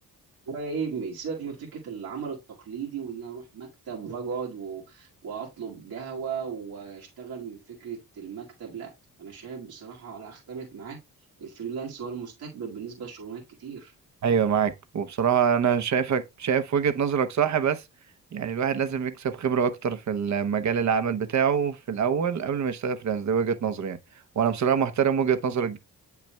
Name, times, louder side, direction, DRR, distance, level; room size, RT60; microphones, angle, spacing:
voice 1, 0.5-8.9 9.2-11.0 11.4-13.9, right 6 dB, 75° right, 2.1 m, -36 dB
voice 2, 14.2-17.8 18.3-24.0 24.4-25.8, right 7 dB, 50° right, 0.8 m, -25 dB
8.9 x 5.8 x 2.2 m
cardioid pair, 125°, 36 cm